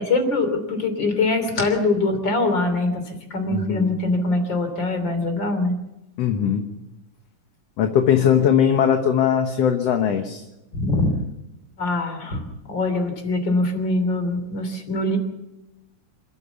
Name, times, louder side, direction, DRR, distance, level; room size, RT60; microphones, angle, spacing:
voice 1, 0.0-5.7 10.7-11.1 11.8-12.4 12.7-15.2, left 2 dB, 35° left, 7 dB, 3.6 m, -23 dB
voice 2, 3.5-3.9 6.2-6.7 7.8-10.4, left 8 dB, 60° left, 5 dB, 2.1 m, -20 dB
27.0 x 14.0 x 7.1 m, 0.95 s
omnidirectional pair, 3.6 m